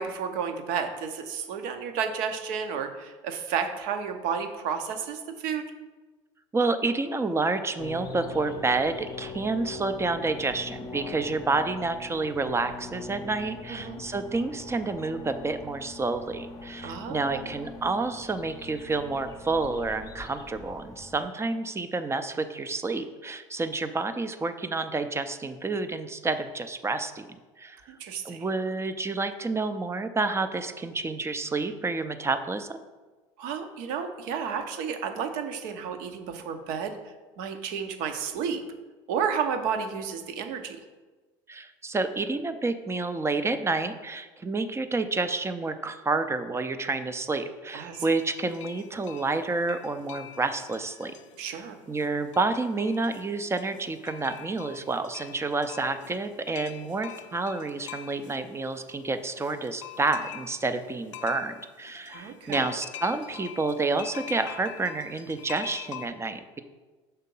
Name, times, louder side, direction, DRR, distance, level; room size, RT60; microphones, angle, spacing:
voice 1, 0.0-5.6 13.7-14.0 16.8-17.4 27.9-28.4 33.4-38.6 39.1-40.8 47.7-48.1 51.4-51.8 62.1-62.6, right 7 dB, 60° right, 7 dB, 0.8 m, -32 dB
voice 2, 6.5-28.0 28.2-32.8 41.5-51.1 51.9-66.6, right 3 dB, 15° right, 9 dB, 0.5 m, -29 dB
sound 1, 7.8-21.3, left 3 dB, 25° left, 0.7 m, -42 dB
sound 2, 47.9-66.1, left 11 dB, 85° left, 0.4 m, -45 dB
5.7 x 3.6 x 5.4 m, 1.3 s
hypercardioid pair, 75°, 15 cm